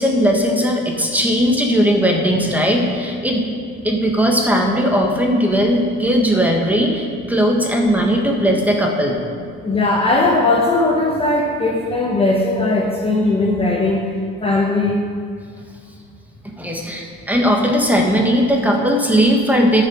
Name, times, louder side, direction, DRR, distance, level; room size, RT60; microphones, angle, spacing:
voice 1, 0.0-3.5 3.8-9.2 16.6-19.8, equal, 5° right, 1 dB, 1.6 m, -17 dB
voice 2, 9.6-14.1 14.4-15.0, left 2 dB, 20° left, -1 dB, 1.1 m, -18 dB
12.0 x 6.5 x 6.4 m, 2.1 s
cardioid pair, 115°, 29 cm